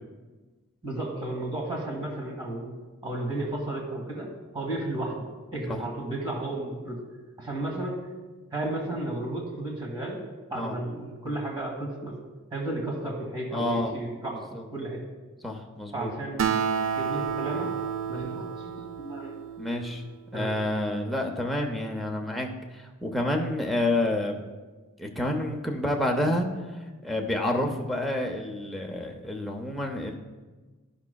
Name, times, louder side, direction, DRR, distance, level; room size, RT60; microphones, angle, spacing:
voice 1, 0.8-2.7 3.0-5.3 5.5-7.0 7.4-8.1 8.5-10.2 10.5-12.2 12.5-15.0 15.9-16.4 17.0-17.7 18.1-19.4 20.3-20.5, right 2 dB, 20° right, -2 dB, 1.8 m, -33 dB
voice 2, 13.5-14.0 14.5-14.6 15.4-16.1 19.6-20.0 20.3-24.4 25.0-26.5 27.0-30.1, left 1 dB, ahead, 0 dB, 0.6 m, -29 dB
Acoustic guitar, 16.4-20.1, right 7 dB, 65° right, 0.5 m, -30 dB
13.0 x 6.0 x 2.3 m, 1.3 s
head